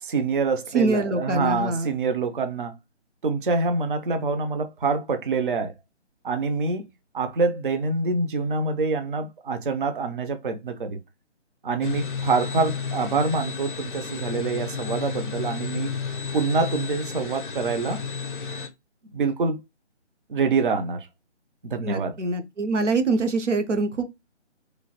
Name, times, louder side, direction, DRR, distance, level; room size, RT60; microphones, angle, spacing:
voice 1, 0.0-2.7 3.2-5.7 6.2-6.9 7.1-11.0 11.6-15.9 16.3-18.0 19.1-19.6 20.3-21.1 21.6-22.1, right 4 dB, 50° right, 0.5 m, -26 dB
voice 2, 0.7-1.9 21.8-24.0, right 3 dB, 80° right, 0.8 m, -24 dB
sound 1, 11.8-18.7, left 5 dB, 45° left, 0.5 m, -32 dB
3.0 x 2.3 x 2.8 m
figure-of-eight pair, 150°, 35 cm